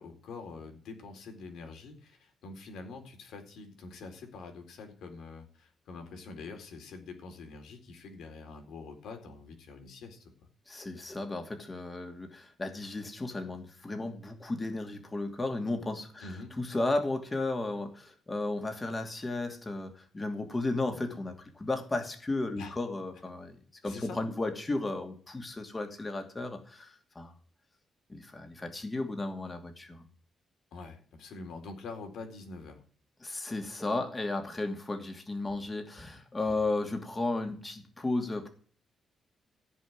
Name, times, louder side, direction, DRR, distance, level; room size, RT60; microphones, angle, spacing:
voice 1, 0.0-10.3 16.2-16.5 22.5-22.8 23.8-24.3 30.7-32.8, left 4 dB, 85° left, 5 dB, 4.1 m, -45 dB
voice 2, 10.7-16.3 16.6-23.6 23.8-27.3 28.1-30.1 33.2-38.5, left 2 dB, 25° left, 5 dB, 2.7 m, -34 dB
15.5 x 5.6 x 9.6 m, 0.44 s
cardioid pair, 95°, 0 cm